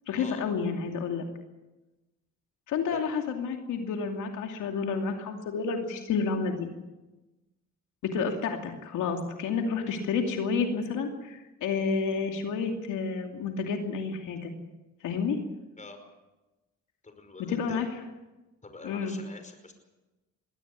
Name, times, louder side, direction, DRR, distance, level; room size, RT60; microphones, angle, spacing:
voice 1, 0.1-1.3 2.7-6.7 8.0-14.5 15.0-15.4 17.5-17.9 18.8-19.2, left 5 dB, 80° left, 3 dB, 2.7 m, -30 dB
voice 2, 17.0-17.9 18.6-19.7, left 3 dB, 25° left, 6 dB, 5.3 m, -45 dB
22.0 x 16.5 x 8.6 m, 1.1 s
cardioid pair, 90°, 30 cm